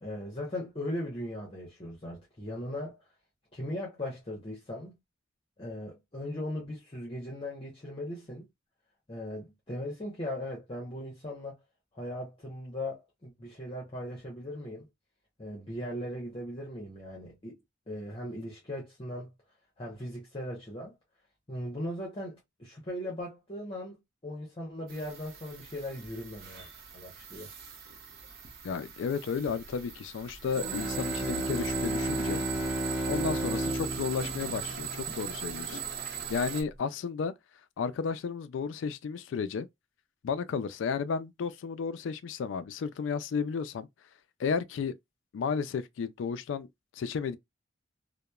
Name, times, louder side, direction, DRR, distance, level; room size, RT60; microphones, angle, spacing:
voice 1, 0.0-3.0 3.5-5.0 5.6-8.5 9.1-11.6 11.9-14.9 15.4-17.6 17.9-19.3 19.8-20.9 21.5-26.7 26.9-27.5 35.1-35.2, left 1 dB, 30° left, 0.8 m, -38 dB
sound 1, 24.9-36.6, right 8 dB, 55° right, 0.6 m, -40 dB
voice 2, 28.6-32.4 33.1-35.8 36.3-37.3 37.8-39.7 40.2-43.9 44.4-44.9 45.3-46.7 47.0-47.4, left 6 dB, 70° left, 0.3 m, -33 dB
Bowed string instrument, 30.5-35.8, right 1 dB, ahead, 1.6 m, -33 dB
2.9 x 2.1 x 2.2 m
head